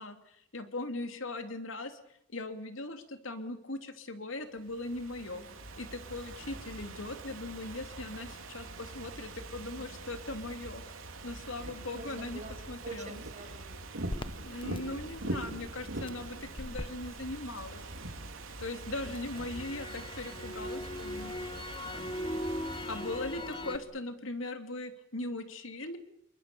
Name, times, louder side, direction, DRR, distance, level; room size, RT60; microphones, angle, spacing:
voice 1, 0.0-2.0 2.3-5.4 5.7-10.8 11.2-12.4 12.7-13.2 14.4-17.8 18.6-21.3 22.9-26.0, left 2 dB, 75° left, 7 dB, 2.8 m, -39 dB
Ocean / Fireworks, 4.6-23.9, right 2 dB, 90° right, 3.4 m, -43 dB
voice 2, 5.3-5.6 6.5-6.6 9.7-10.0 11.6-12.5 12.8-13.9 19.0-19.6 22.2-24.1, right 2 dB, 35° right, 6 dB, 6.1 m, -50 dB
Crackle, 14.1-18.2 18.6-23.8, left 1 dB, 25° left, 1.0 m, -40 dB
29.0 x 23.5 x 6.9 m, 0.76 s
head